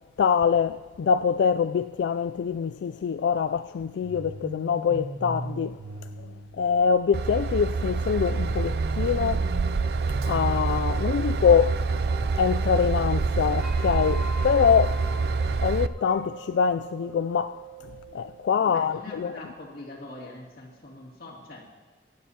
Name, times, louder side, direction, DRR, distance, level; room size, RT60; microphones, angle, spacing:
voice 1, 0.2-5.8 6.2-11.9 12.4-15.0 15.6-17.6 18.1-19.3, left 6 dB, 80° left, 0.3 m, -24 dB
sound 1, 4.0-7.2 8.3-11.2, right 2 dB, 85° right, 0.7 m, -39 dB
Train / Engine, 7.1-15.9, right 4 dB, 60° right, 0.4 m, -26 dB
sound 2, 11.6-19.6, right 1 dB, ahead, 1.4 m, -45 dB
voice 2, 18.6-21.6, left 1 dB, 55° left, 2.6 m, -43 dB
25.0 x 9.5 x 2.8 m
head